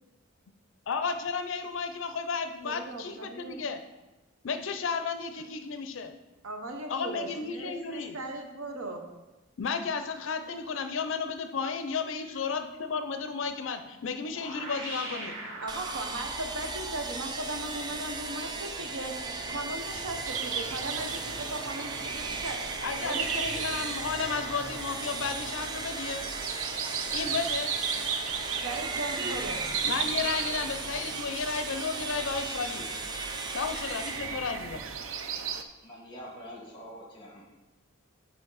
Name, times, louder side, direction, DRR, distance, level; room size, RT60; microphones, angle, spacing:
voice 1, 0.9-3.8 4.4-6.2 6.9-8.2 9.6-15.4 22.8-26.3 27.1-27.9 29.8-33.0 33.5-34.9, left 5 dB, 60° left, 8 dB, 0.5 m, -33 dB
voice 2, 2.6-3.7 6.4-9.1 15.6-19.2 19.4-22.6 23.0-23.7 28.6-29.6, right 2 dB, 90° right, 4 dB, 1.0 m, -37 dB
sound 1, 14.3-33.1, right 2 dB, 55° right, 1.3 m, -46 dB
sound 2, 15.7-35.1, right 3 dB, 20° right, 0.4 m, -37 dB
sound 3, 20.3-35.6, right 6 dB, 70° right, 0.5 m, -36 dB
voice 3, 35.8-37.4, equal, 20° left, -2 dB, 1.8 m, -45 dB
7.8 x 5.2 x 4.0 m, 1.1 s
head